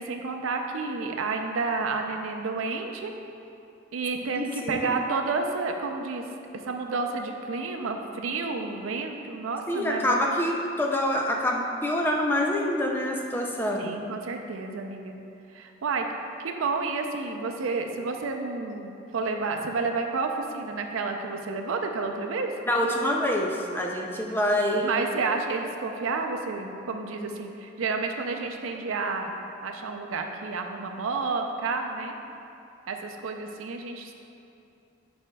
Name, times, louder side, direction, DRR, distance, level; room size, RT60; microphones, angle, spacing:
voice 1, 0.0-3.1 3.9-6.3 6.5-10.2 13.8-15.1 15.5-16.1 16.4-22.5 24.8-32.2 32.9-34.1, right 4 dB, 90° right, 4 dB, 0.5 m, -30 dB
voice 2, 4.3-4.9 9.7-14.0 22.7-25.2, left 1 dB, 10° left, 0 dB, 0.4 m, -26 dB
9.8 x 4.3 x 2.2 m, 2.7 s
head